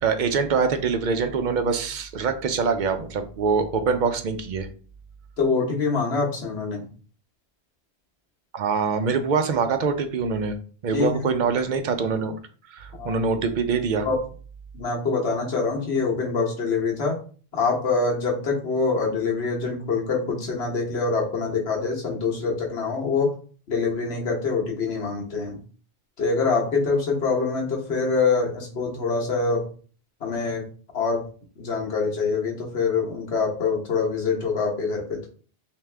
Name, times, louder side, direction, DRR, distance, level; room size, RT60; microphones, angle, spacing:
voice 1, 0.0-4.7 8.5-10.6 10.8-12.3 12.7-14.1, right 5 dB, 55° right, 8 dB, 0.6 m, -24 dB
voice 2, 5.4-6.9 10.9-11.3 13.0-13.2 14.0-14.2 14.7-17.2 17.5-23.3 23.7-25.6 26.2-29.7 30.2-30.6 30.9-31.2 31.6-35.3, left 4 dB, 75° left, -1 dB, 1.3 m, -25 dB
3.5 x 2.8 x 3.2 m, 0.41 s
omnidirectional pair, 1.1 m